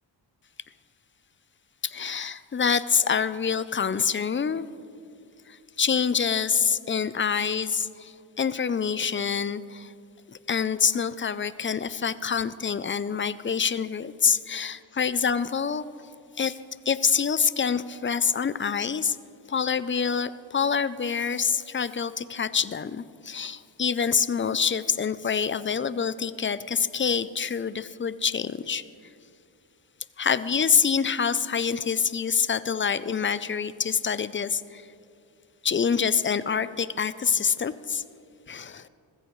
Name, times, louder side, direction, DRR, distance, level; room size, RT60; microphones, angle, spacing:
voice 1, 1.8-4.7 5.5-9.9 10.3-15.8 16.4-16.6 16.9-19.2 19.5-28.8 30.2-34.8 35.6-38.0 38.5-38.9, left 6 dB, 30° left, 15 dB, 0.4 m, -26 dB
20.0 x 15.0 x 3.1 m, 2.5 s
wide cardioid pair, 90°, 45 cm